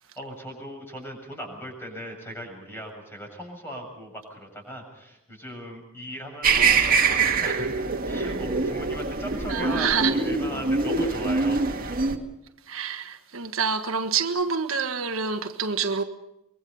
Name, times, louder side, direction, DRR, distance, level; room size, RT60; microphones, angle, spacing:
voice 1, 0.2-12.1, equal, 10° left, 7.2 m, -38 dB
sound 1, 6.4-12.2, right 4 dB, 45° right, 2.1 m, -24 dB
voice 2, 9.5-10.1 12.7-16.0, right 6 dB, 70° right, 1.5 m, -27 dB
24.5 x 22.0 x 5.6 m
head